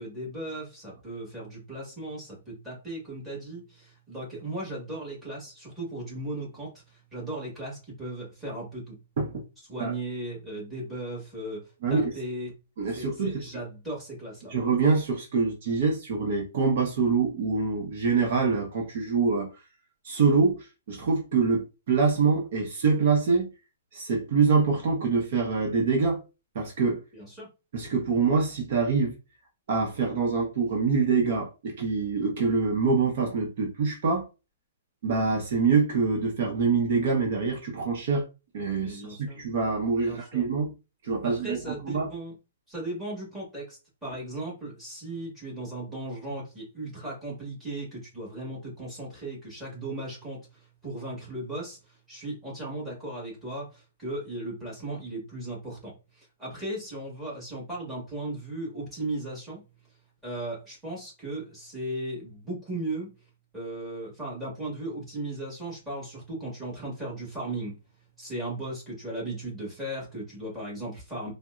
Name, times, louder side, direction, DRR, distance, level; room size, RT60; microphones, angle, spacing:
voice 1, 0.0-9.0 9.7-12.5 12.9-14.5 27.1-27.5 38.8-39.4 40.0-40.5 41.2-42.3 42.7-51.8 52.1-59.6 60.2-63.1 63.5-67.8 68.2-71.3, right 1 dB, 5° right, 1.6 m, -37 dB
voice 2, 12.8-13.4 14.5-19.5 20.0-23.5 23.9-26.2 26.5-27.0 27.7-29.2 29.7-34.3 35.0-38.2 38.5-40.7 41.0-41.6 41.8-42.1, right 4 dB, 55° right, 0.8 m, -25 dB
4.0 x 2.1 x 2.4 m
hypercardioid pair, 160°, 0 cm